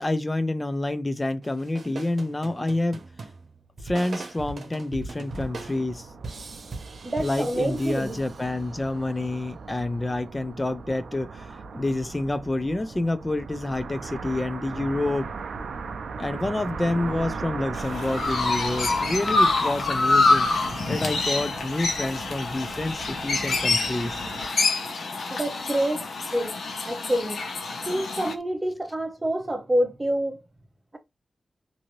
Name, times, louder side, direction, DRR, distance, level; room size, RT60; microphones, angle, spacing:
voice 1, 0.0-3.0 3.8-6.1 7.2-15.3 16.2-20.5 20.9-24.2, left 2 dB, 25° left, 0.5 m, -28 dB
sound 1, 1.4-8.8, right 3 dB, 70° right, 0.8 m, -40 dB
sound 2, 5.3-24.5, right 4 dB, 85° right, 0.3 m, -38 dB
voice 2, 7.0-8.2 25.3-26.6 26.8-27.4 27.9-30.4, right 1 dB, 25° right, 0.9 m, -27 dB
Chirp tweet, 17.7-28.3, left 3 dB, 75° left, 0.8 m, -26 dB
2.7 x 2.7 x 3.0 m
cardioid pair, 70°, 0 cm